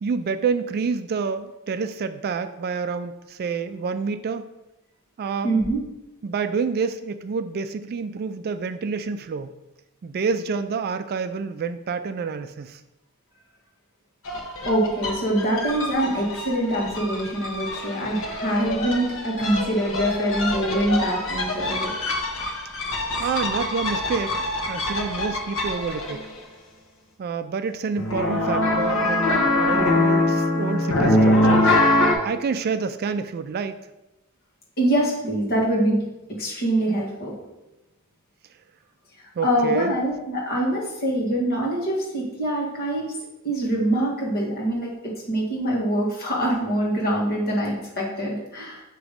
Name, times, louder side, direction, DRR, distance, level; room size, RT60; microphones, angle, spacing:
voice 1, 0.0-4.5 5.2-5.5 6.2-9.5 10.0-12.8 23.2-26.3 27.2-31.7 32.2-33.8 39.4-39.9, right 5 dB, 45° right, 10 dB, 0.3 m, -28 dB
voice 2, 5.4-5.8 14.6-21.9 34.8-36.0 36.3-37.4 39.2-43.1 43.4-48.8, right 1 dB, 45° left, -3 dB, 1.8 m, -24 dB
sound 1, 14.2-26.4 28.0-32.1, left 1 dB, 65° left, 1.1 m, -24 dB
7.0 x 3.0 x 5.0 m, 0.99 s
head